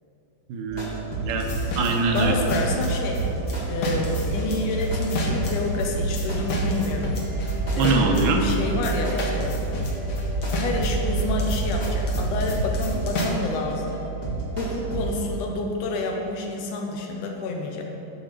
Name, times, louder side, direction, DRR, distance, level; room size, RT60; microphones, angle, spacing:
voice 1, 0.5-1.5 1.8-2.3 7.8-8.4, right 3 dB, 80° right, 3 dB, 2.3 m, -23 dB
sound 1, 0.7-15.2, right 3 dB, 35° left, 0.6 m, -29 dB
sound 2, 1.4-3.6 3.8-13.3, left 1 dB, 60° left, 1.3 m, -30 dB
voice 2, 2.1-3.2 3.7-7.1 7.7-9.5 10.6-14.0 14.6-17.8, left 2 dB, 80° left, 2 dB, 2.2 m, -29 dB
9.5 x 4.4 x 6.6 m, 3.0 s
omnidirectional pair, 3.8 m